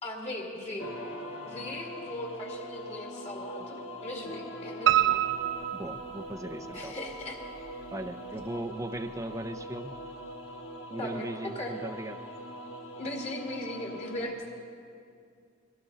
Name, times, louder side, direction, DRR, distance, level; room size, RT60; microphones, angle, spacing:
voice 1, 0.0-0.9 1.4-5.2 6.7-7.4 11.0-11.7 13.0-14.4, left 1 dB, 35° left, 0 dB, 2.3 m, -38 dB
sound 1, 0.8-14.3, equal, 75° left, 1.6 m, -42 dB
Piano, 4.9-6.8 7.2-8.1 8.4-8.5 8.9-9.0 9.3-9.4, right 12 dB, 65° right, 0.5 m, -27 dB
voice 2, 5.7-6.9 7.9-9.9 10.9-12.2, right 1 dB, 15° right, 9 dB, 0.6 m, -38 dB
21.5 x 17.0 x 4.0 m, 2.3 s
head